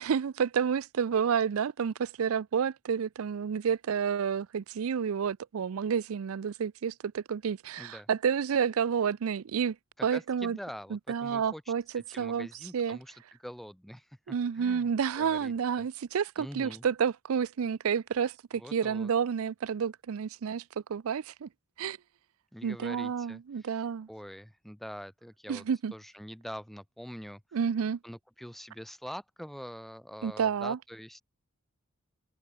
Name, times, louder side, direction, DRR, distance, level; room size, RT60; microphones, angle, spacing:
voice 1, 0.0-9.8 10.0-10.6 10.9-12.5 12.7-13.0 14.3-20.6 20.9-21.5 21.8-22.0 22.6-24.1 25.5-25.9 27.5-28.0 30.2-30.8, right 7 dB, 70° right, 0.4 m, -30 dB
voice 2, 7.8-8.1 10.0-14.2 14.5-14.9 15.2-15.9 16.4-16.9 18.5-19.1 22.5-23.7 24.1-25.6 25.9-27.4 28.0-31.2, equal, ahead, 0.9 m, -44 dB
open air
head